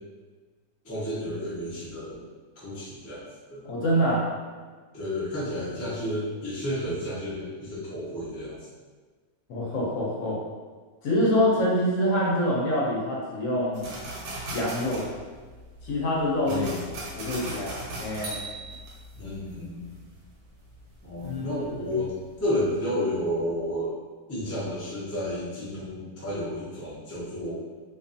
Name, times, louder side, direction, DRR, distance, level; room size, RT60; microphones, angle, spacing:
voice 1, 0.8-2.3 2.6-3.2 3.5-3.6 4.9-8.6 16.4-16.8 19.1-20.0 21.0-22.1 22.4-23.9 24.3-27.5, left 1 dB, 25° left, -9 dB, 0.3 m, -31 dB
voice 2, 3.7-4.3 9.5-10.4 11.0-13.9 14.5-15.1 15.8-18.4 21.2-22.0, equal, 65° left, -5 dB, 0.9 m, -26 dB
sound 1, 13.7-22.0 22.4-22.7, right 1 dB, 85° right, 1.1 m, -39 dB
2.5 x 2.3 x 2.5 m, 1.4 s
omnidirectional pair, 1.6 m